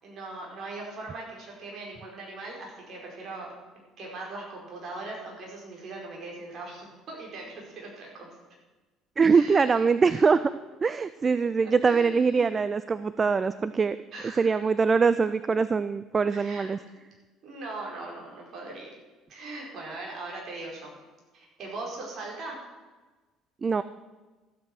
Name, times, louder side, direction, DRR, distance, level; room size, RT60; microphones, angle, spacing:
voice 1, 0.0-3.5 4.0-8.3 9.3-10.3 11.6-12.5 14.1-14.6 16.3-16.7 17.4-18.9 19.3-20.9 21.3-22.6, right 2 dB, 50° right, -2 dB, 5.0 m, -40 dB
voice 2, 9.2-10.4 10.8-14.0 14.4-16.8 23.6-23.8, right 5 dB, 30° right, 14 dB, 0.4 m, -23 dB
13.5 x 8.7 x 6.4 m, 1.2 s
figure-of-eight pair, 55°, 0 cm